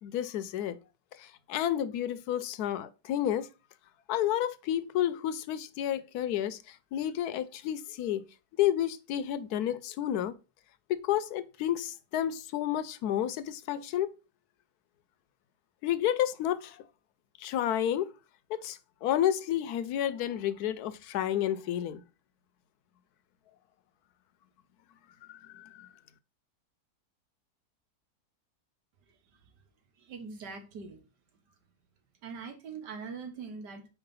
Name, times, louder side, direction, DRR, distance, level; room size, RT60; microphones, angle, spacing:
voice 1, 0.0-0.8 1.2-3.5 4.1-8.2 8.6-10.3 10.9-14.1 15.8-16.8 17.4-18.1 18.5-22.0 25.3-25.9, left 11 dB, 75° left, 1.0 m, -31 dB
voice 2, 30.0-31.0 32.2-33.9, right 5 dB, 85° right, 1.8 m, -42 dB
4.9 x 4.7 x 5.3 m
omnidirectional pair, 1.8 m